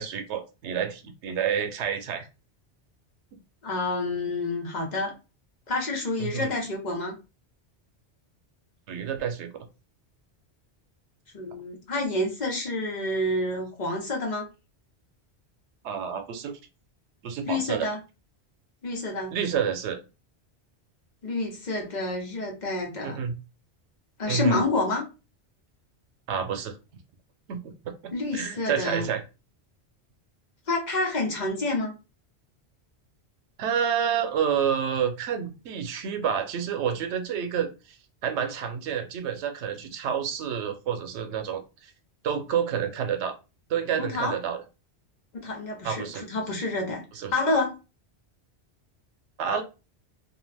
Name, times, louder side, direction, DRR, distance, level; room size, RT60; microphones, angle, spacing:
voice 1, 0.0-2.3 6.2-6.5 8.9-9.5 15.8-16.5 17.2-17.9 19.3-20.0 23.0-23.4 24.3-24.6 26.3-26.8 27.5-27.7 28.0-29.2 33.6-37.7 38.2-41.9 42.2-43.3 43.7-44.6 45.8-46.2 47.1-47.3 49.4-49.6, right 8 dB, 90° right, 6 dB, 0.9 m, -29 dB
voice 2, 3.6-5.1 5.7-7.1 11.3-14.5 17.5-18.0 18.8-19.3 21.2-23.2 24.2-25.1 28.1-29.1 30.7-31.9 44.0-44.4 45.3-47.0 47.3-47.8, left 2 dB, 45° left, -1 dB, 0.9 m, -28 dB
2.4 x 2.2 x 3.2 m, 0.29 s
omnidirectional pair, 1.1 m